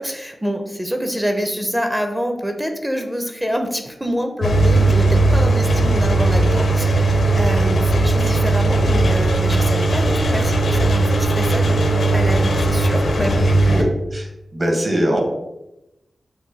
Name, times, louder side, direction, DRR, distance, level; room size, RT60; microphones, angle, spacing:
voice 1, 0.0-13.4, equal, 10° right, 5 dB, 0.6 m, -26 dB
Engine, 4.4-13.8, right 2 dB, 85° left, 0.6 m, -17 dB
voice 2, 13.6-15.2, equal, 40° right, 0 dB, 1.3 m, -22 dB
6.0 x 2.2 x 4.0 m, 0.92 s
wide cardioid pair, 115°, 0 cm